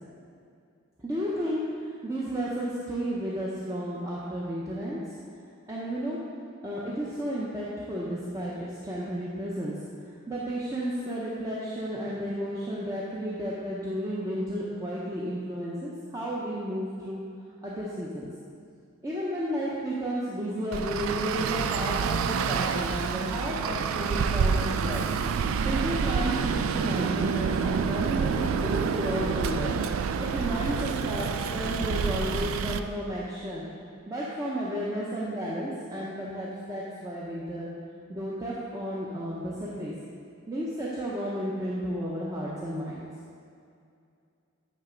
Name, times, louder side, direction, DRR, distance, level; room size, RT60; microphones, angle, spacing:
voice 1, 1.0-5.0 5.2-5.4 5.7-6.2 6.6-9.8 10.3-17.2 17.6-18.3 19.0-25.0 25.6-29.7 30.2-33.7 34.1-37.7 38.1-39.9 40.5-43.0, equal, 15° right, -7 dB, 0.7 m, -32 dB
Traffic noise roadway noise, 20.7-32.8, right 6 dB, 85° right, 0.3 m, -28 dB
9.1 x 3.3 x 5.0 m, 2.4 s
head